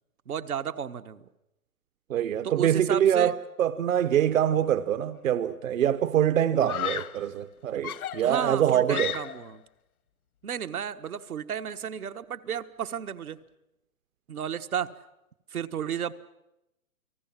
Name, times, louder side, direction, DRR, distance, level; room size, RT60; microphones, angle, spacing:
voice 1, 0.3-1.3 2.4-3.3 8.2-9.6 10.4-13.4 14.3-14.9 15.5-16.1, right 8 dB, 80° right, 1.5 m, -33 dB
voice 2, 2.1-9.1, right 10 dB, 65° right, 1.0 m, -24 dB
Screaming, 5.1-5.6 6.6-7.3 7.8-9.6, left 9 dB, 80° left, 0.8 m, -35 dB
29.5 x 19.0 x 7.4 m
hypercardioid pair, 155°, 43 cm